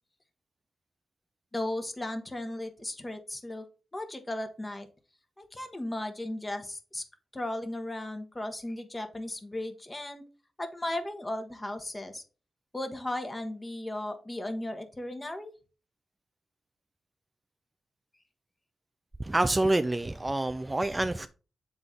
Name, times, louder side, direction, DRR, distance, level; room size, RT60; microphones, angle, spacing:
voice 1, 1.5-3.7 3.9-4.9 5.4-7.0 7.3-10.2 10.6-12.2 12.7-15.5, left 1 dB, 20° left, 1.2 m, -36 dB
voice 2, 19.2-21.3, right 2 dB, 20° right, 0.4 m, -27 dB
7.2 x 4.0 x 3.7 m
cardioid pair, 65°, 0 cm